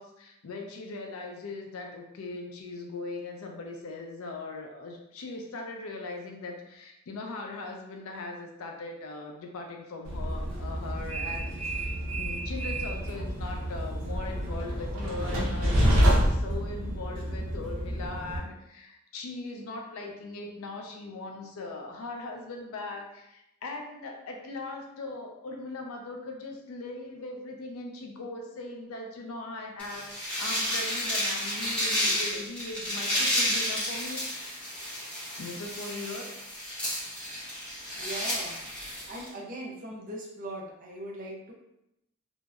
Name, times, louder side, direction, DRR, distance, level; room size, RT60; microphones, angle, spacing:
voice 1, 0.0-11.9 12.2-34.7 35.4-36.3 36.5-37.0, left 3 dB, 80° left, 2 dB, 0.4 m, -40 dB
Train, 10.0-18.4, equal, 80° right, 0.6 m, -28 dB
sound 1, 29.8-39.3, equal, 5° left, 0.7 m, -31 dB
voice 2, 38.0-38.6 39.1-41.5, right 1 dB, 40° right, -3 dB, 0.5 m, -39 dB
2.6 x 2.0 x 2.3 m, 0.84 s
head